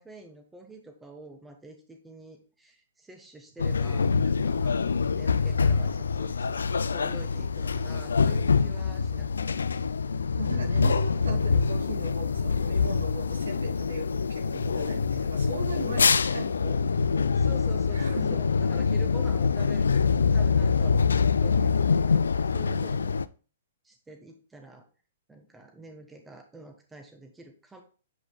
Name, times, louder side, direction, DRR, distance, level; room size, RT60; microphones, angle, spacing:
voice 1, 0.0-9.9 17.4-22.2 22.5-23.2 23.8-24.8 25.3-27.8, right 2 dB, 10° right, 4 dB, 1.5 m, -47 dB
sound 1, 3.6-23.3, left 5 dB, 85° left, 0.4 m, -25 dB
voice 2, 10.4-17.3 17.9-18.4 22.7-22.9, right 2 dB, 85° right, 3 dB, 2.7 m, -38 dB
9.4 x 5.1 x 2.4 m, 0.37 s
hypercardioid pair, 125°, 0 cm